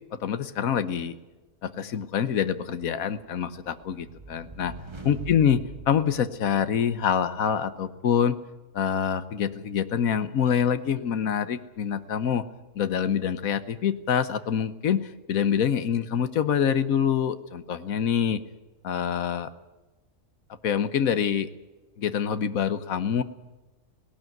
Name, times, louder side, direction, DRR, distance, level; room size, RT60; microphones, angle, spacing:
voice 1, 0.1-1.2 1.6-4.7 5.0-8.4 8.7-12.4 12.7-18.4 18.8-19.5 20.6-21.5 22.0-23.2, left 8 dB, 85° left, 12 dB, 1.4 m, -26 dB
sound 1, 3.5-7.0, right 2 dB, 20° right, 1.8 m, -43 dB
18.0 x 18.0 x 9.2 m, 1.1 s
omnidirectional pair, 1.4 m